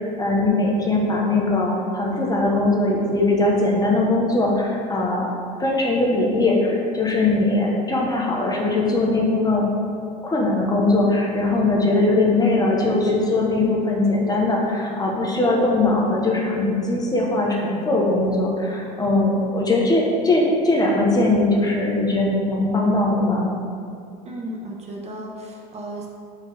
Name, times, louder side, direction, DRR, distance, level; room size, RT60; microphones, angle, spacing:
voice 1, 0.2-9.6 10.2-23.5, left 2 dB, 20° left, -2 dB, 1.2 m, -20 dB
voice 2, 24.2-26.1, right 1 dB, 35° right, -1 dB, 1.0 m, -34 dB
4.8 x 4.7 x 4.9 m, 2.3 s
supercardioid pair, 90°, 20 cm